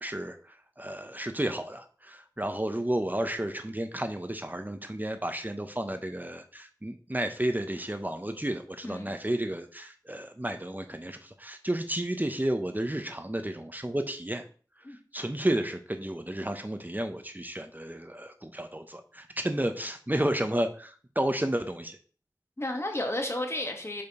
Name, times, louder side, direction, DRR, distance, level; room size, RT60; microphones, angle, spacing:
voice 1, 0.0-14.4 14.9-22.0, right 1 dB, 25° right, 7 dB, 0.7 m, -32 dB
voice 2, 8.8-9.2 14.8-15.0 22.6-24.0, left 1 dB, 35° left, 2 dB, 1.5 m, -32 dB
5.4 x 4.4 x 5.3 m, 0.41 s
wide cardioid pair, 40°, 8 cm